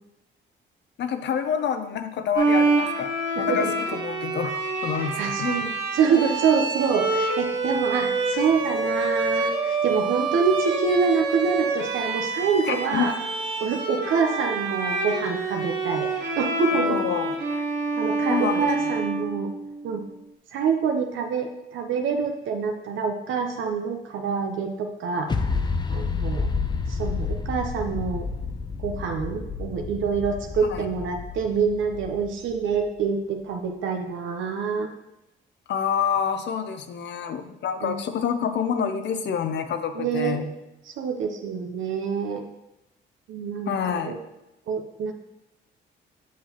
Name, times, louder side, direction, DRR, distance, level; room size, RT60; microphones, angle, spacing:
voice 1, 1.0-3.7 3.9-5.7 12.7-13.1 16.7-17.4 18.3-18.9 30.7-30.9 35.7-40.5 43.7-44.2, left 7 dB, 65° left, 9 dB, 0.6 m, -28 dB
Bowed string instrument, 2.4-19.8, right 3 dB, 60° right, 1.3 m, -27 dB
voice 2, 3.4-3.7 5.2-13.1 13.6-16.1 16.4-17.0 18.0-19.5 19.8-20.0 20.5-25.3 25.9-26.5 26.9-28.3 28.8-34.9 37.8-38.0 39.9-40.4 40.9-42.4 43.3-44.2 44.7-45.1, right 5 dB, 80° right, 3 dB, 0.7 m, -26 dB
sound 1, 25.3-32.8, left 4 dB, 20° left, 0.4 m, -30 dB
7.5 x 5.7 x 2.9 m, 0.92 s
cardioid pair, 90°, 20 cm